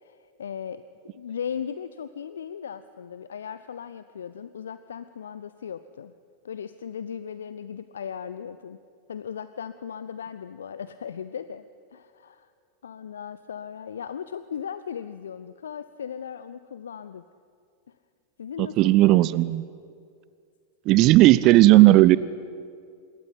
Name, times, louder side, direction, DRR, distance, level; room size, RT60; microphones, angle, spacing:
voice 1, 0.0-6.1 6.4-8.8 9.1-11.6 11.9-12.5 12.8-17.2 18.4-19.1, left 8 dB, 65° left, 14 dB, 0.8 m, -37 dB
voice 2, 18.6-19.6 20.8-22.2, right 17 dB, 40° right, 18 dB, 0.8 m, -15 dB
26.5 x 22.0 x 9.7 m, 2.3 s
figure-of-eight pair, 90°, 0 cm